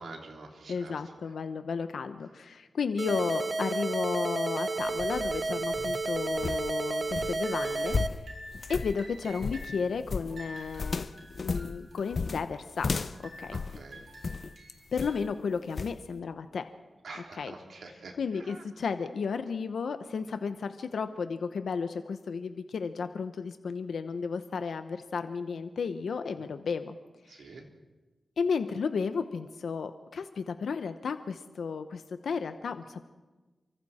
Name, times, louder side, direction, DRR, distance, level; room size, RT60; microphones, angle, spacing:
voice 1, 0.0-1.0 5.7-5.9 13.5-14.1 17.0-18.6 26.4-26.5 27.3-27.6, right 3 dB, 80° right, 1 dB, 3.5 m, -46 dB
voice 2, 0.7-8.2 8.7-11.1 11.4-13.1 13.4-13.6 14.9-16.7 17.4-17.5 18.2-26.9 27.2-27.5 28.4-33.1, left 5 dB, 85° left, 9 dB, 0.9 m, -33 dB
sound 1, 3.0-8.1, right 3 dB, 40° right, 0.9 m, -31 dB
sound 2, 4.8-14.5 15.0-15.3 15.8-16.0, left 4 dB, 45° left, 0.6 m, -35 dB
sound 3, 6.7-7.1 7.4-8.0 8.3-9.9 10.3-12.4 12.8-13.7 13.9-15.4, equal, 60° right, 6.6 m, -48 dB
29.0 x 24.5 x 4.3 m, 1.2 s
wide cardioid pair, 140°, 0 cm